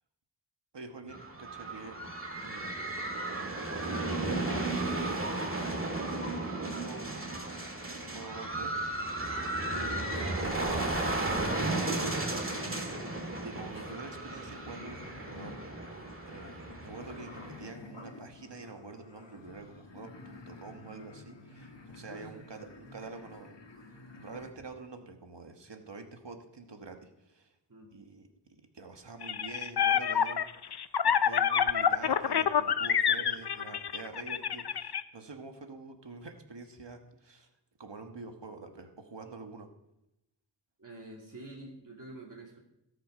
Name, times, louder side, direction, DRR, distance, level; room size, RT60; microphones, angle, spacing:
voice 1, 0.7-2.0 2.4-2.9 3.6-3.8 4.1-5.8 6.1-7.3 7.9-8.7 9.7-11.0 11.3-12.2 13.4-16.0 16.2-23.6 24.2-27.5 27.9-28.3 28.7-30.7 31.0-37.5 37.8-39.7, right 3 dB, 70° right, 5 dB, 1.4 m, -46 dB
sound 1, 1.1-17.7, right 2 dB, 30° right, 1.9 m, -34 dB
sound 2, 11.7-24.5, left 3 dB, 75° left, 1.4 m, -50 dB
voice 2, 22.1-22.5 22.8-23.0 27.7-27.9 40.8-42.6, right 2 dB, 45° right, -2 dB, 2.5 m, -47 dB
sound 3, 29.2-35.0, left 8 dB, 60° left, 0.6 m, -27 dB
17.0 x 5.8 x 5.0 m, 0.87 s
wide cardioid pair, 50°, 44 cm